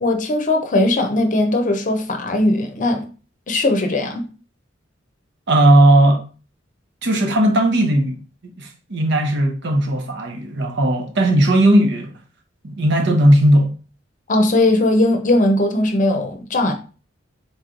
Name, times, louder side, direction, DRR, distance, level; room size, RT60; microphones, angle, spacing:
voice 1, 0.0-3.1 3.5-4.3 14.3-16.7, left 1 dB, 40° left, 0.7 m, -18 dB
voice 2, 5.5-6.2 7.0-8.2 8.6-12.1 12.6-13.7, right 1 dB, 60° right, 0.9 m, -16 dB
3.9 x 3.1 x 3.8 m
head